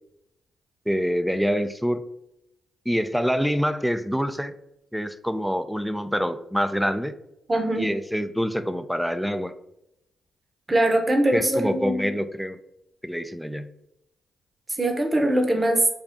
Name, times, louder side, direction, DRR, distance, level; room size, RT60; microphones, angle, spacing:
voice 1, 0.9-2.0 2.9-4.5 4.9-7.1 7.8-9.5 11.3-12.6 13.0-13.7, equal, ahead, 10 dB, 0.4 m, -26 dB
voice 2, 7.5-7.8 10.7-12.1 14.8-15.8, right 1 dB, 30° right, 4 dB, 0.9 m, -22 dB
3.5 x 2.3 x 3.7 m, 0.83 s
hypercardioid pair, 45°, 0 cm